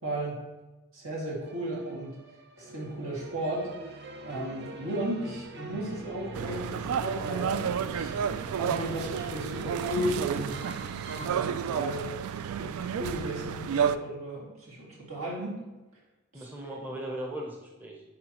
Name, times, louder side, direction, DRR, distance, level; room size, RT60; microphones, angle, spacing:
voice 1, 0.0-0.4 0.9-2.2 2.6-8.2 8.5-10.6 11.1-12.1 12.6-15.6 16.3-16.5, right 1 dB, 70° right, -5 dB, 2.3 m, -35 dB
sound 1, 1.4-11.3, right 1 dB, 55° right, 0.7 m, -43 dB
sound 2, 6.3-14.0, right 8 dB, 85° right, 0.3 m, -31 dB
voice 2, 11.3-11.8 16.3-18.0, right 1 dB, 10° right, -1 dB, 0.7 m, -39 dB
9.8 x 4.8 x 3.0 m, 1.1 s
head